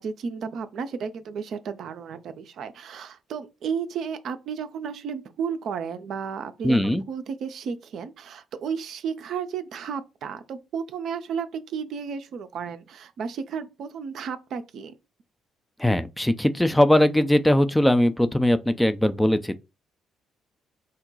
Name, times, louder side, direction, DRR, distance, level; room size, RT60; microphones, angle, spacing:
voice 1, 0.0-15.0, right 6 dB, 55° right, 0.4 m, -33 dB
voice 2, 6.6-7.0 15.8-19.6, left 1 dB, 5° left, 0.4 m, -20 dB
3.9 x 2.1 x 3.9 m
figure-of-eight pair, 45°, 0 cm